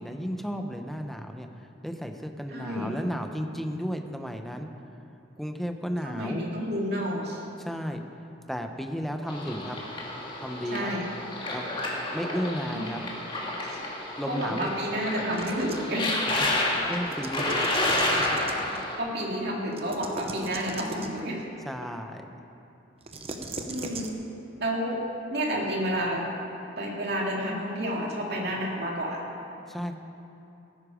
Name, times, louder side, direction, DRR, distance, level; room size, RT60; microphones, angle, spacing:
voice 1, 0.0-4.7 5.4-6.5 7.6-8.0 8.5-9.8 10.4-10.9 11.5-11.7 12.1-13.0 14.2-14.7 16.4-16.5 16.9-17.7 18.6-18.7 21.6-22.3 29.7-30.0, equal, ahead, 5 dB, 0.8 m, -33 dB
voice 2, 2.5-2.9 6.0-7.4 10.7-11.1 12.7-12.8 13.7-13.8 14.3-16.1 19.0-21.4 23.7-24.1 24.6-25.0 25.3-26.2 26.8-29.2, equal, 60° right, -2 dB, 2.7 m, -30 dB
sound 1, 9.3-19.0, left 1 dB, 25° left, 2.1 m, -30 dB
sound 2, 15.3-16.0 16.9-18.8 19.7-21.2 23.0-24.1, right 2 dB, 30° right, 0.9 m, -39 dB
17.5 x 9.9 x 5.0 m, 2.9 s
head